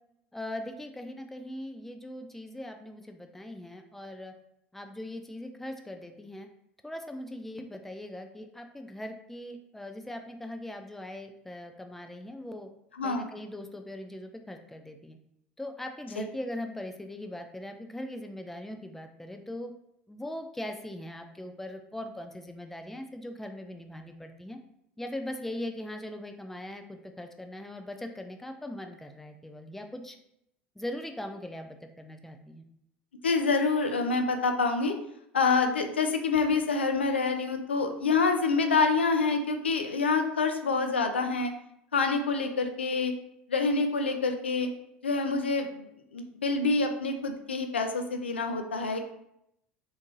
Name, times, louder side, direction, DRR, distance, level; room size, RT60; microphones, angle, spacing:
voice 1, 0.3-4.3 4.7-6.5 6.8-12.7 13.0-15.2 15.6-19.7 20.1-24.6 25.0-30.2 30.8-32.6, left 1 dB, 5° left, 5 dB, 0.4 m, -40 dB
voice 2, 13.0-13.3 16.2-16.3 33.2-34.9 35.3-41.5 41.9-43.1 43.5-44.7 45.0-49.1, left 4 dB, 85° left, 6 dB, 0.4 m, -27 dB
3.5 x 2.6 x 2.7 m, 0.77 s
figure-of-eight pair, 75°, 6 cm